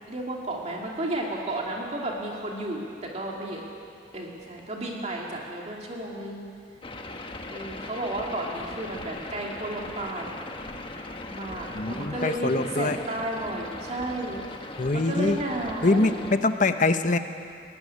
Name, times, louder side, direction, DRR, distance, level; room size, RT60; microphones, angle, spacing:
voice 1, 0.1-3.6 4.1-6.5 7.5-10.3 11.3-16.1, right 1 dB, 35° right, -1 dB, 2.5 m, -33 dB
sound 1, 6.8-16.3, left 2 dB, 30° left, 1.3 m, -39 dB
voice 2, 11.7-13.0 14.8-15.4 15.8-17.2, left 2 dB, 45° left, 9 dB, 1.0 m, -24 dB
20.0 x 16.0 x 9.9 m, 2.4 s
head